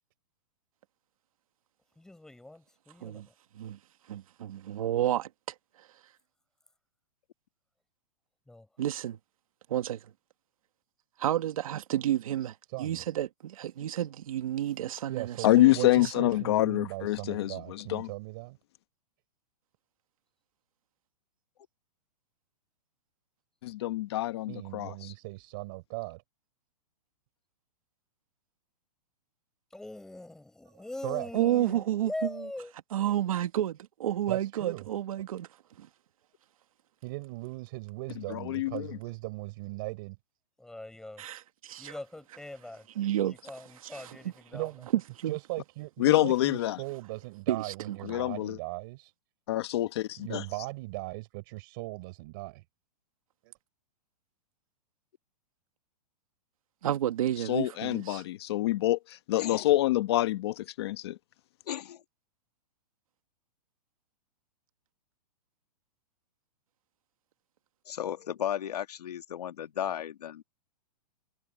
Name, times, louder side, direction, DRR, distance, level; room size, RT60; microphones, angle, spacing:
voice 1, 2.0-3.3 8.5-8.7 29.7-32.7 40.6-41.3 41.8-42.9 43.2-44.7, left 2 dB, ahead, 5.4 m, -42 dB
voice 2, 4.1-5.3 8.8-9.2 9.7-10.0 11.2-16.1 31.3-32.1 32.9-35.5 35.8-35.9 41.2-41.9 43.0-43.4 43.9-44.0 45.2-45.4 47.5-48.0 56.8-58.2, right 12 dB, 55° right, 2.0 m, -31 dB
voice 3, 12.7-13.0 15.1-18.6 24.5-26.2 31.0-31.3 34.3-34.9 37.0-40.2 44.5-44.9 45.3-49.1 50.2-52.6 53.4-53.5, right 23 dB, 30° right, 6.4 m, -38 dB
voice 4, 15.4-18.1 23.6-25.1 38.3-38.9 46.0-46.8 48.0-48.6 49.5-50.4 57.5-61.2, left 16 dB, 40° left, 1.2 m, -26 dB
voice 5, 61.7-62.0 67.9-70.4, left 10 dB, 70° left, 2.3 m, -35 dB
hypercardioid pair, 175°, 21 cm